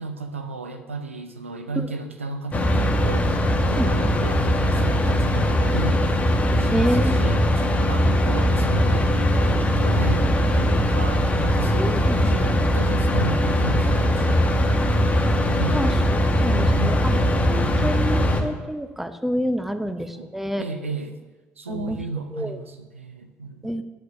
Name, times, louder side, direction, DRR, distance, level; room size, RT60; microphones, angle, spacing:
voice 1, 0.0-3.4 3.7-6.2 6.6-15.9 16.5-17.0 17.7-18.4 19.8-20.3 20.6-21.2 21.6-23.8, right 3 dB, 85° right, 6 dB, 0.6 m, -34 dB
sound 1, 2.5-18.4, equal, 20° left, 1.2 m, -20 dB
voice 2, 6.7-7.2 11.8-12.4 15.7-15.9 16.4-20.7 21.7-22.0 22.3-22.6 23.6-23.8, equal, 5° right, 9 dB, 0.7 m, -28 dB
9.3 x 6.6 x 5.5 m, 1.2 s
figure-of-eight pair, 50°, 7 cm